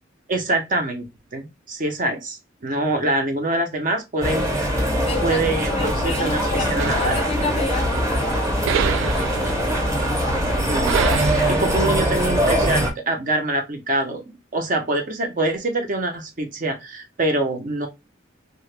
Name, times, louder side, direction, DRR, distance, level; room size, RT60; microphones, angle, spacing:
voice 1, 0.3-1.0 1.3-4.5 5.2-7.2 10.7-11.0 11.5-17.9, right 2 dB, 45° right, 0.7 m, -25 dB
sound 1, 4.2-12.9, equal, 15° right, 0.9 m, -22 dB
voice 2, 5.0-9.9, left 4 dB, 30° left, 0.4 m, -32 dB
sound 2, 6.8-12.9, right 5 dB, 80° right, 0.3 m, -29 dB
2.8 x 2.2 x 3.2 m
head